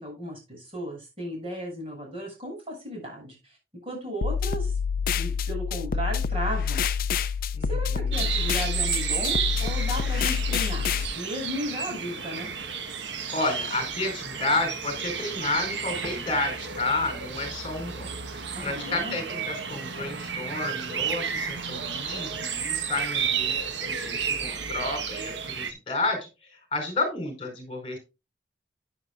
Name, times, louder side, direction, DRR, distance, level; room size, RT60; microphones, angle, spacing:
voice 1, 0.0-3.6 3.8-4.7 5.2-6.8 7.7-10.9 11.1-12.5 18.5-19.1, equal, 30° right, -1 dB, 6.9 m, -35 dB
sound 1, 4.2-11.1, left 6 dB, 50° left, 0.4 m, -27 dB
voice 2, 7.5-8.3 13.3-28.0, left 3 dB, 30° left, 5 dB, 4.6 m, -31 dB
sound 2, 8.1-25.7, right 6 dB, 90° right, 1.3 m, -32 dB
11.0 x 10.0 x 2.5 m, 0.27 s
head